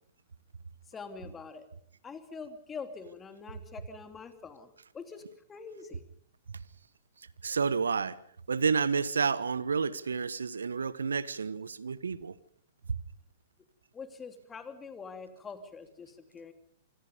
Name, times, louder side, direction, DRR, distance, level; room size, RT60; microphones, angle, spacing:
voice 1, 0.9-1.7 2.0-6.0 13.9-16.5, left 5 dB, 20° left, 2.9 m, -45 dB
voice 2, 7.4-8.2 8.5-12.4, right 5 dB, 75° right, 1.2 m, -30 dB
27.0 x 26.0 x 5.4 m
figure-of-eight pair, 105°, 0 cm